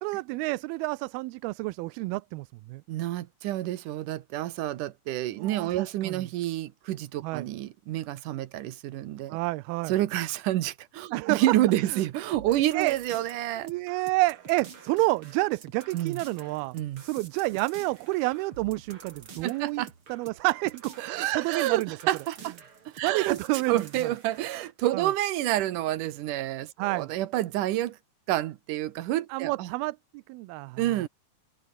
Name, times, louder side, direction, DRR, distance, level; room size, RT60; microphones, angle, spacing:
voice 1, 0.0-2.8 5.4-6.3 7.2-7.5 9.3-9.9 11.1-11.5 11.9-12.0 12.4-12.5 12.7-13.0 13.6-16.8 17.0-22.0 23.0-23.9 24.9-25.1 26.8-27.1 29.3-30.8, right 22 dB, 85° right, 2.5 m, -29 dB
voice 2, 2.9-9.4 9.9-13.7 15.9-16.2 16.7-17.0 19.4-19.9 21.0-22.6 22.9-23.4 23.7-28.0 28.3-29.7 30.8-31.1, right 14 dB, 70° right, 2.3 m, -29 dB
sound 1, 12.3-24.7, right 6 dB, 35° right, 3.3 m, -49 dB
omnidirectional pair, 4.4 m